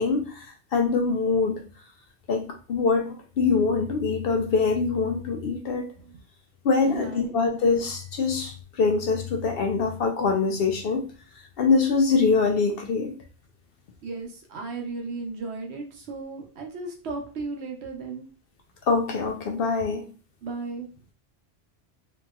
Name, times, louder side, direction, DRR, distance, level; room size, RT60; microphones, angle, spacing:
voice 1, 0.0-1.6 2.3-5.9 6.6-11.1 11.6-13.1 18.9-20.0, left 4 dB, 65° left, 3 dB, 0.7 m, -24 dB
voice 2, 6.8-7.4 14.0-18.3 20.4-20.9, right 3 dB, 70° right, 2 dB, 0.9 m, -35 dB
2.9 x 2.8 x 2.3 m, 0.36 s
omnidirectional pair, 1.2 m